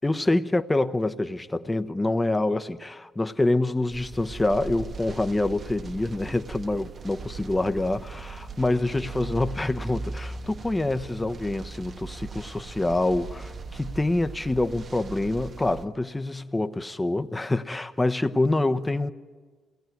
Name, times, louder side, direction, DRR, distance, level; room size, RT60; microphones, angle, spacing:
voice 1, 0.0-19.1, left 2 dB, 15° left, 1.1 m, -26 dB
sound 1, 3.9-15.8, right 4 dB, 45° right, 1.3 m, -39 dB
28.0 x 18.5 x 9.4 m
supercardioid pair, 65°, 0 cm